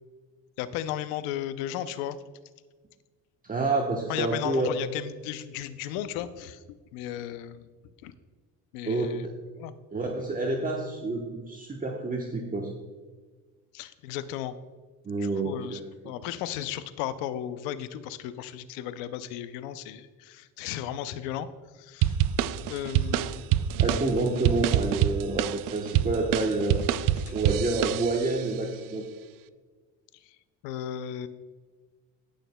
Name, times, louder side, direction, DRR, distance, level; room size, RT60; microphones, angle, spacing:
voice 1, 0.6-2.2 4.1-6.6 6.9-7.7 8.0-8.1 8.7-9.3 9.5-9.7 13.7-14.6 15.2-21.5 21.7-22.2 22.7-23.4 27.3-27.4 30.2-30.3 30.6-31.3, left 11 dB, 90° left, 13 dB, 0.6 m, -35 dB
voice 2, 3.4-4.7 8.9-9.3 9.9-12.7 15.0-16.1 23.8-26.8 27.3-29.0, right 2 dB, 20° right, 0 dB, 1.1 m, -28 dB
sound 1, 22.0-28.4, right 11 dB, 60° right, 0.5 m, -26 dB
19.0 x 6.4 x 2.2 m, 1.4 s
supercardioid pair, 80°, 38 cm